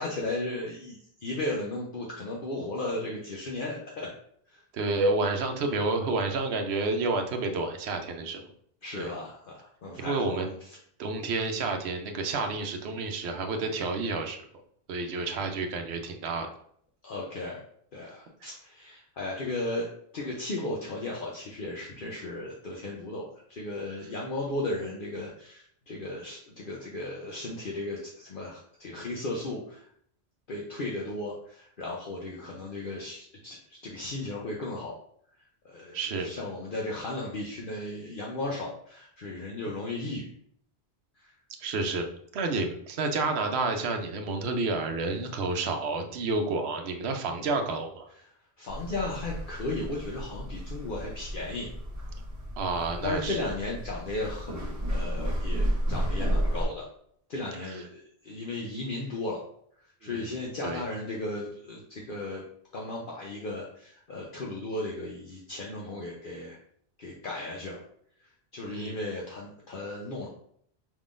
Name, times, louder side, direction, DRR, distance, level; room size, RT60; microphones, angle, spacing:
voice 1, 0.0-4.1 4.5-4.6 8.8-10.4 17.0-17.6 17.9-19.9 20.1-29.9 30.5-33.6 33.8-35.0 35.6-40.3 41.2-41.3 48.6-51.7 53.0-56.9 57.3-59.4 60.0-62.4 62.7-66.6 67.0-67.8 68.5-70.3, left 2 dB, 55° left, -3 dB, 0.9 m, -35 dB
voice 2, 4.7-8.5 9.0-9.1 10.0-10.5 11.0-14.4 14.9-16.5 18.4-18.5 35.9-36.3 41.6-42.0 42.3-48.1 52.6-53.5 57.6-57.8 60.0-60.3 60.6-60.8 68.6-69.0, right 3 dB, 75° right, 5 dB, 0.9 m, -30 dB
sound 1, 48.7-56.6, equal, 15° right, 1.0 m, -32 dB
5.2 x 3.6 x 2.5 m, 0.65 s
omnidirectional pair, 1.1 m